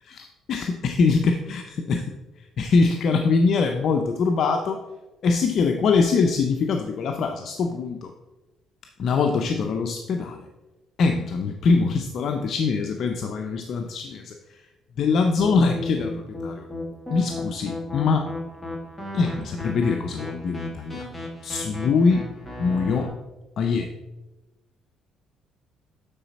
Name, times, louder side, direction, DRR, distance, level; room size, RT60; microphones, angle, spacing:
voice 1, 0.1-4.8 5.2-8.1 9.0-10.5 11.0-14.7 15.0-16.7 17.1-18.3 19.1-21.2 21.4-22.3 22.6-23.1 23.6-23.9, left 4 dB, 50° left, 3 dB, 0.5 m, -23 dB
sound 1, 15.4-23.1, left 1 dB, 5° left, 1.8 m, -35 dB
8.8 x 4.1 x 4.1 m, 1.1 s
cardioid pair, 125°, 0 cm